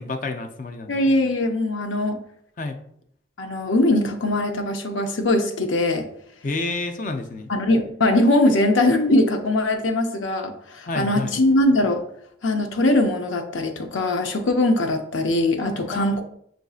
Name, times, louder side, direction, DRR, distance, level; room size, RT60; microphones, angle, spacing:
voice 1, 0.0-1.0 2.6-2.8 6.4-7.5 10.8-11.4 15.9-16.2, left 3 dB, 45° left, 6 dB, 0.5 m, -29 dB
voice 2, 0.9-2.2 3.4-6.1 7.5-12.0 12.4-16.2, left 1 dB, 90° left, 6 dB, 0.6 m, -21 dB
7.0 x 2.6 x 2.4 m, 0.68 s
head